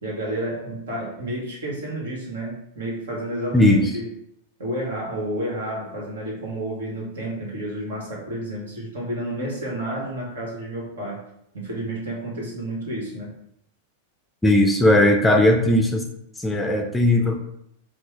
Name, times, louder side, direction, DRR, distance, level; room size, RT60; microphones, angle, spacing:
voice 1, 0.0-4.0 4.6-11.2 11.5-13.3, right 1 dB, 75° right, -2 dB, 1.2 m, -30 dB
voice 2, 3.5-3.9 14.4-16.0 16.4-17.4, left 1 dB, 10° left, 3 dB, 0.4 m, -17 dB
4.4 x 2.0 x 3.1 m, 0.74 s
hypercardioid pair, 95°, 0 cm